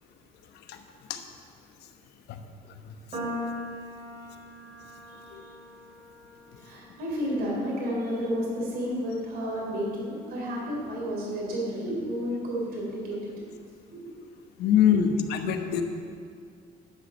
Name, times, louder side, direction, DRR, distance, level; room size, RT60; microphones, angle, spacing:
sound 1, 3.1-9.5, left 1 dB, 40° right, 3.1 m, -41 dB
voice 1, 6.6-13.5 13.9-14.1 14.9-15.0, equal, 65° right, -4 dB, 3.4 m, -31 dB
voice 2, 14.6-15.8, left 9 dB, 75° left, 6 dB, 1.1 m, -24 dB
11.5 x 6.1 x 7.8 m, 2.2 s
cardioid pair, 110°, 17 cm